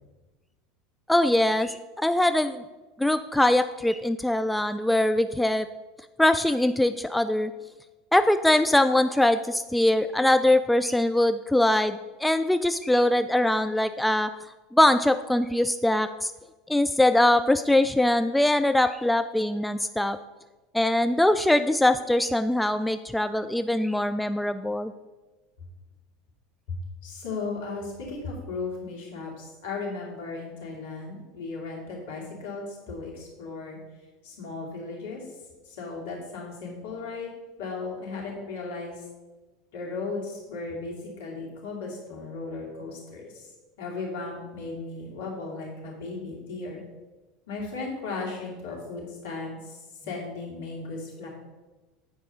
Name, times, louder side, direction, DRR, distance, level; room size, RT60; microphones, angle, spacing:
voice 1, 1.1-2.6 3.0-5.7 6.2-7.5 8.1-14.3 14.7-16.3 16.7-20.2 20.7-24.9, left 1 dB, 5° left, 11 dB, 0.3 m, -22 dB
voice 2, 26.7-33.8 34.2-35.3 35.6-37.3 37.6-39.1 39.7-43.5 43.8-46.8 47.5-51.3, left 3 dB, 70° left, -2 dB, 2.5 m, -36 dB
8.3 x 4.8 x 5.4 m, 1.2 s
hypercardioid pair, 80°, 0 cm